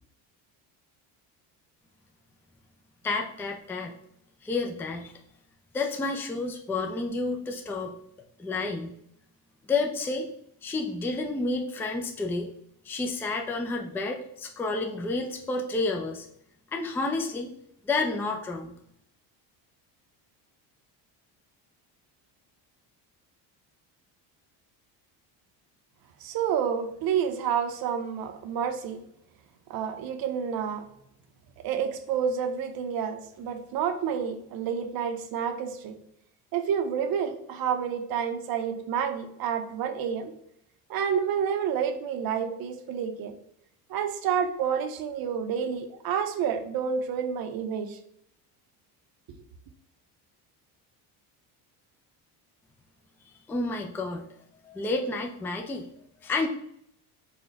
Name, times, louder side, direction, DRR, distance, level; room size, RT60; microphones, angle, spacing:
voice 1, 3.0-3.9 4.4-5.1 5.7-8.0 8.4-8.9 9.7-10.3 10.6-12.5 12.8-16.3 16.7-17.5 17.8-18.7 53.5-54.2 54.6-55.9 56.2-56.5, left 3 dB, 5° left, 2 dB, 0.3 m, -30 dB
voice 2, 26.2-29.0 29.7-30.9 31.6-36.0 36.5-40.3 40.9-43.3 43.9-48.0 49.3-49.4, right 7 dB, 55° right, 7 dB, 0.7 m, -29 dB
4.1 x 2.2 x 3.9 m, 0.72 s
cardioid pair, 110°, 43 cm